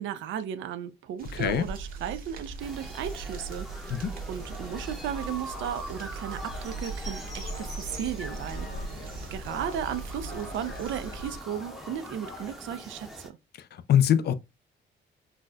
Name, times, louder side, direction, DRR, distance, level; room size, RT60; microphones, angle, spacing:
voice 1, 0.0-4.0 4.3-8.9 9.3-13.4, right 9 dB, 75° right, 0.4 m, -35 dB
sound 1, 1.2-11.4, right 3 dB, 45° right, 0.9 m, -40 dB
voice 2, 1.3-1.7 3.9-4.1 13.9-14.3, left 9 dB, 55° left, 0.4 m, -22 dB
sound 2, 2.6-13.3, equal, ahead, 0.7 m, -42 dB
sound 3, 4.5-12.5, left 3 dB, 80° left, 1.4 m, -47 dB
4.0 x 2.1 x 2.4 m
cardioid pair, 90°, 20 cm